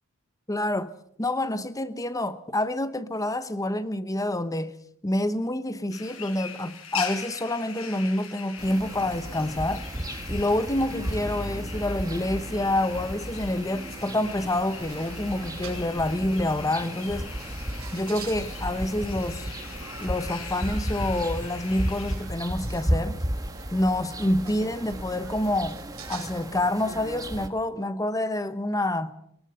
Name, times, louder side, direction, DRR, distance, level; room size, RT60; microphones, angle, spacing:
voice 1, 0.5-4.7 5.0-9.9 10.3-17.3 17.9-19.5 20.0-23.2 23.7-25.8 26.1-29.1, left 1 dB, 15° left, 0.9 m, -27 dB
sound 1, 5.9-22.1, left 7 dB, 75° left, 5.3 m, -41 dB
sound 2, 8.6-27.5, right 1 dB, 15° right, 1.4 m, -34 dB
sound 3, 13.8-26.5, right 4 dB, 80° right, 5.4 m, -47 dB
22.0 x 20.0 x 6.6 m
head